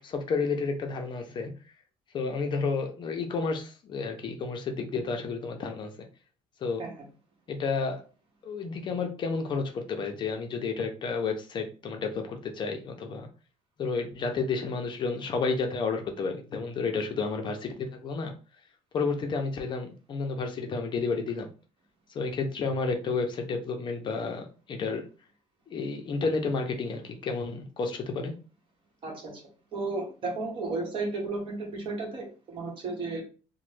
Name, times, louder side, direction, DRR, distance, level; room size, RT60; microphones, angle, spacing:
voice 1, 0.0-1.5 2.1-5.9 6.6-6.8 7.5-8.0 8.4-13.3 13.8-18.3 18.9-21.5 22.1-25.0 25.7-28.3, left 4 dB, 40° left, 4 dB, 0.5 m, -31 dB
voice 2, 29.0-29.4 29.7-33.2, right 3 dB, 40° right, 0 dB, 1.1 m, -33 dB
3.0 x 2.1 x 3.1 m, 0.36 s
cardioid pair, 145°, 13 cm